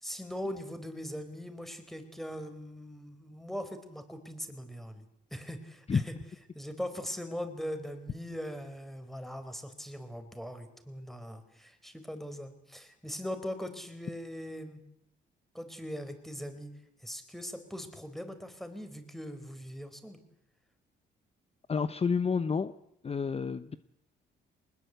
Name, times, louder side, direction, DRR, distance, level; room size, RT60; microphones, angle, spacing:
voice 1, 0.0-5.1 5.3-6.1 6.5-14.8 15.5-16.7 17.0-20.2, equal, ahead, 9 dB, 4.4 m, -40 dB
voice 2, 21.7-22.7 23.0-23.8, left 5 dB, 30° left, 13 dB, 0.9 m, -29 dB
23.0 x 20.5 x 8.2 m, 0.79 s
cardioid pair, 90°, 20 cm